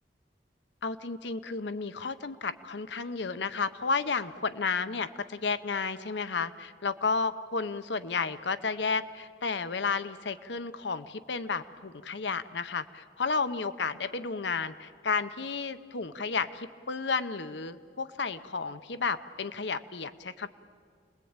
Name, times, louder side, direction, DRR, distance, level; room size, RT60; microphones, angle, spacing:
voice 1, 0.8-20.5, left 4 dB, 70° left, 12 dB, 0.8 m, -32 dB
29.0 x 21.0 x 8.9 m, 2.1 s
head